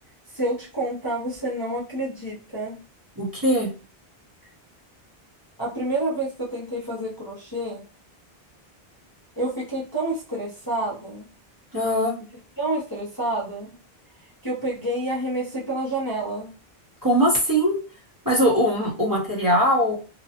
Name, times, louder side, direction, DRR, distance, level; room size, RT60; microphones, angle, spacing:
voice 1, 0.3-2.8 5.6-7.8 9.4-11.3 12.6-13.7 14.4-16.5, right 1 dB, 25° left, -8 dB, 0.8 m, -28 dB
voice 2, 3.2-3.7 11.7-12.1 17.0-17.8 18.2-20.0, equal, 20° right, -7 dB, 0.9 m, -21 dB
2.8 x 2.2 x 2.8 m, 0.35 s
omnidirectional pair, 1.1 m